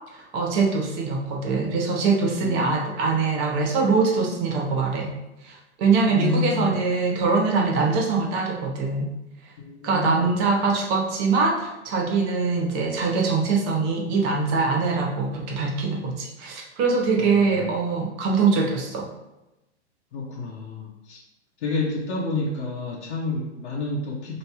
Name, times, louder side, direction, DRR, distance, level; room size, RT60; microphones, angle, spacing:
voice 1, 0.3-5.1 5.4-9.1 9.8-19.1, right 4 dB, 35° right, 0 dB, 0.9 m, -23 dB
voice 2, 2.4-2.8 6.1-6.8 9.6-10.3 17.2-17.5 20.1-21.2 21.6-24.4, left 3 dB, 75° left, -2 dB, 0.9 m, -29 dB
3.1 x 2.9 x 4.5 m, 0.98 s
hypercardioid pair, 135°, 35 cm